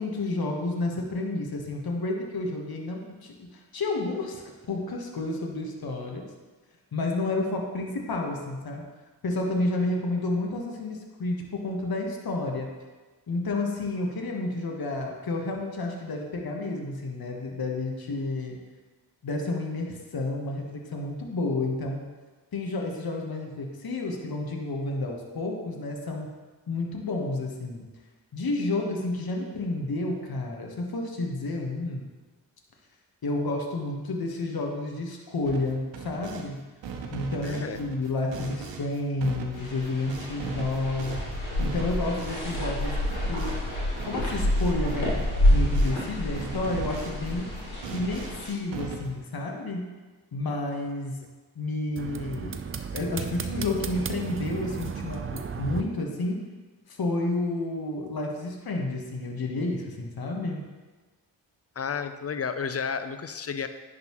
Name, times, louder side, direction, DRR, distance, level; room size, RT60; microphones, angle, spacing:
voice 1, 0.0-4.4 4.7-6.2 6.9-8.9 9.2-12.7 13.3-18.6 19.2-22.0 22.5-26.3 26.7-27.8 28.3-32.1 33.2-36.6 37.1-41.2 41.6-43.6 44.0-45.2 45.5-47.5 47.9-49.8 50.3-51.2 51.5-52.6 52.9-56.4 56.9-60.6, left 2 dB, 50° left, 0 dB, 1.4 m, -30 dB
sound 1, 35.4-36.5 36.8-46.0 46.3-49.3, right 5 dB, 70° right, 0.9 m, -39 dB
voice 2, 37.4-37.8 61.8-63.7, left 6 dB, 30° left, 10 dB, 0.6 m, -32 dB
sound 2, 39.5-48.5, left 1 dB, 85° left, 2.1 m, -28 dB
sound 3, 52.0-55.8, right 6 dB, 30° right, 0.5 m, -34 dB
10.5 x 4.1 x 3.1 m, 1.3 s
supercardioid pair, 40°, 46 cm